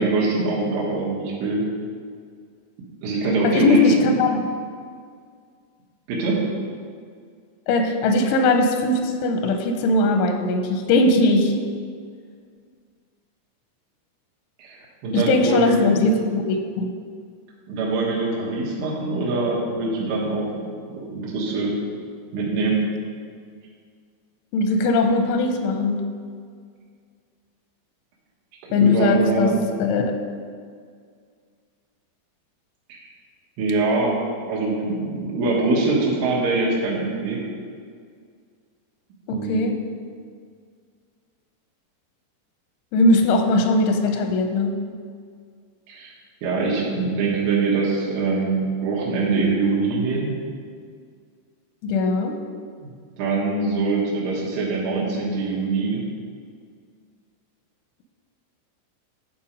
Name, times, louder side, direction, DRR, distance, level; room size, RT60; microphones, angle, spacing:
voice 1, 0.0-1.6 3.0-4.1 6.1-6.4 14.6-14.8 15.0-16.1 17.7-20.5 20.9-21.7 22.3-22.8 28.8-29.6 32.9-33.0 33.6-34.2 34.5-37.4 39.3-39.7 45.9-46.1 46.4-50.3 52.8-56.0, right 3 dB, 85° right, -5 dB, 3.8 m, -23 dB
voice 2, 3.4-4.4 7.7-11.6 15.1-16.9 24.5-26.1 28.7-29.5 29.8-30.2 39.3-39.8 42.9-44.7 51.8-52.4, left 2 dB, 85° left, 5 dB, 3.0 m, -20 dB
11.0 x 4.3 x 5.2 m, 2.1 s
omnidirectional pair, 5.4 m